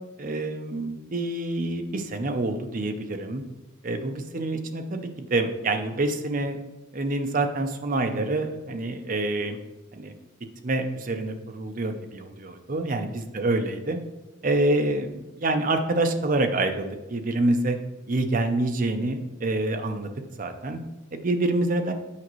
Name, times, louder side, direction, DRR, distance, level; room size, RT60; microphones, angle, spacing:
voice 1, 0.2-3.4 3.8-6.6 6.9-9.6 9.9-10.1 10.6-14.0 14.4-17.8 18.1-20.1 20.4-20.8 21.1-21.9, right 2 dB, 45° right, 6 dB, 0.6 m, -27 dB
8.5 x 5.0 x 3.1 m, 1.1 s
head